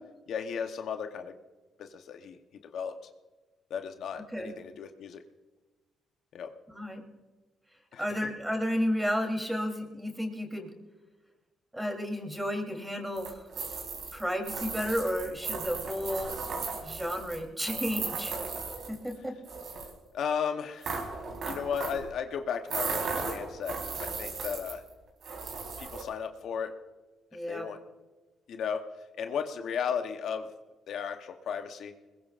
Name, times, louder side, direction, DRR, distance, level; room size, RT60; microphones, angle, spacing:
voice 1, 0.3-1.4 1.8-2.4 2.7-3.0 3.7-5.2 6.3-6.5 7.9-8.1 20.1-21.0 21.4-24.8 25.8-26.7 27.5-27.8 28.5-28.8 29.1-30.5 30.9-31.9, left 7 dB, 70° left, 6 dB, 0.9 m, -35 dB
voice 2, 4.1-4.5 6.7-7.0 8.0-10.7 11.7-13.5 14.1-16.3 16.8-18.3 18.9-19.3 27.3-27.7, equal, 5° right, 3 dB, 3.3 m, -32 dB
sound 1, 13.2-19.1 19.4-19.9 20.8-22.1 22.7-24.9 25.2-26.0, right 4 dB, 60° right, 4.1 m, -36 dB
21.5 x 21.0 x 2.5 m, 1.2 s
cardioid pair, 90°, 0 cm